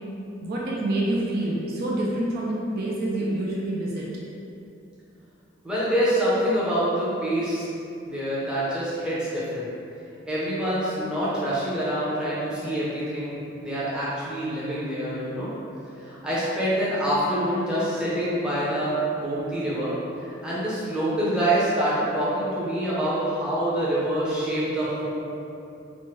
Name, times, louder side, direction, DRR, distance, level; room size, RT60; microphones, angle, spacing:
voice 1, 0.4-4.1, right 1 dB, 50° right, -4 dB, 0.4 m, -27 dB
voice 2, 5.6-7.7 8.1-9.7 10.3-15.5 16.0-19.9 20.2-25.1, right 1 dB, 5° right, -9 dB, 0.6 m, -26 dB
3.0 x 2.1 x 3.1 m, 2.7 s
head